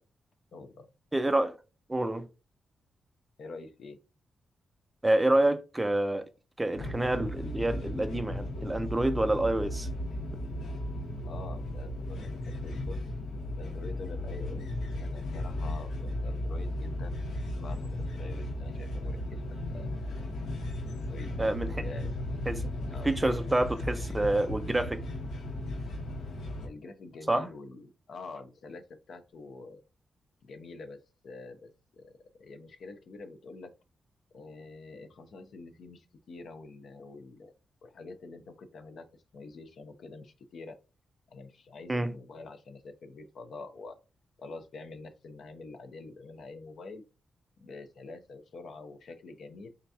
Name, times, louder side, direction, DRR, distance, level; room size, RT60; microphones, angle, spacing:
voice 1, 0.5-0.9 3.4-4.0 11.2-13.0 13.5-14.6 15.0-17.2 17.5-19.9 21.1-22.2 22.9-23.1 26.6-29.8 30.4-31.0 31.2-32.1 32.4-33.7 34.3-37.5 37.8-39.0 39.3-40.8 41.3-44.0 44.4-47.0 47.6-49.7, left 3 dB, 65° left, 0.6 m, -46 dB
voice 2, 1.1-1.6 1.9-2.3 5.0-6.3 6.6-9.9 21.4-21.9 22.5-22.6 23.0-25.0 27.3-27.5 41.9-42.1, right 1 dB, 10° right, 0.3 m, -27 dB
sound 1, 6.7-26.7, left 1 dB, 85° left, 1.0 m, -35 dB
3.8 x 3.3 x 2.8 m
wide cardioid pair, 145°, 0 cm